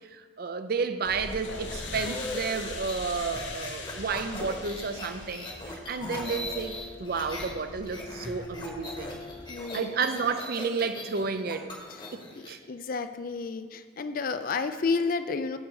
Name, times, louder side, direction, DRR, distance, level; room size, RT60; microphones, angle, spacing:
voice 1, 0.1-9.2 9.7-11.7 12.1-12.6, right 5 dB, 50° right, 9 dB, 0.5 m, -32 dB
sound 1, 1.0-9.5, left 3 dB, 65° left, 1.1 m, -41 dB
sound 2, 1.7-7.5 7.8-12.5, left 1 dB, 25° left, 1.1 m, -39 dB
voice 2, 9.5-10.0 11.9-12.1 12.7-15.6, left 4 dB, 45° left, 10 dB, 0.4 m, -31 dB
9.7 x 6.3 x 4.7 m, 1.6 s
head